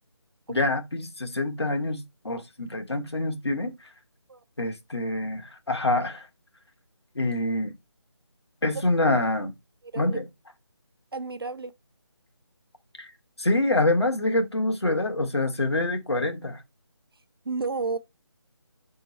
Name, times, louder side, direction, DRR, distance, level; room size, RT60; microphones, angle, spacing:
voice 1, 0.5-3.7 4.6-6.3 7.1-7.7 8.6-9.5 9.9-10.3 13.0-13.1 13.4-16.6, left 2 dB, 70° left, 1.7 m, -26 dB
voice 2, 11.1-11.7 17.4-18.0, right 4 dB, 55° right, 0.7 m, -31 dB
6.0 x 3.8 x 4.3 m
figure-of-eight pair, 160°, 14 cm